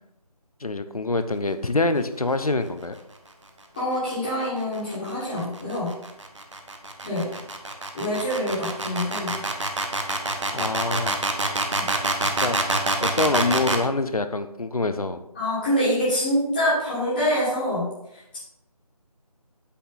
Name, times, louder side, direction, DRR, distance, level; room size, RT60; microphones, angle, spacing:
voice 1, 0.6-2.9 10.5-11.2 12.4-12.6 13.0-15.2, left 3 dB, 70° left, 10 dB, 0.8 m, -25 dB
voice 2, 3.7-6.0 7.0-7.3 7.9-9.4 11.7-11.9 15.3-18.4, equal, 15° left, -12 dB, 1.8 m, -26 dB
sound 1, 4.6-13.9, right 2 dB, 50° right, 1.1 m, -26 dB
8.5 x 5.4 x 3.9 m, 0.86 s
figure-of-eight pair, 160°, 20 cm